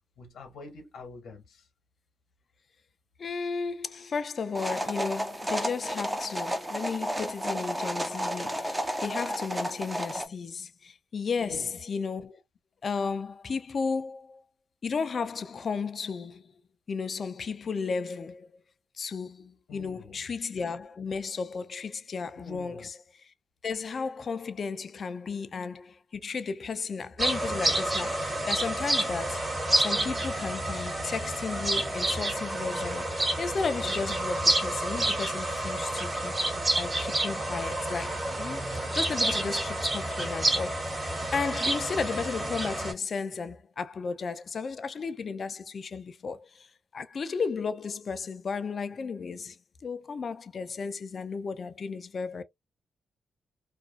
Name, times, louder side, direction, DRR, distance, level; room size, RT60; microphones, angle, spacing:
voice 1, 0.2-1.6 11.4-11.8 19.7-20.2 22.3-22.9, left 3 dB, 80° left, 0.9 m, -46 dB
voice 2, 3.2-12.4 12.8-14.4 14.8-16.5 16.9-18.5 19.0-23.3 23.6-29.5 29.8-36.3 36.8-41.0 41.3-46.7 46.9-52.4, left 5 dB, 50° left, 0.3 m, -34 dB
sound 1, 4.5-10.3, equal, 15° right, 0.6 m, -32 dB
sound 2, 27.2-42.9, right 1 dB, 35° right, 1.1 m, -29 dB
2.5 x 2.3 x 2.2 m
cardioid pair, 65°, 0 cm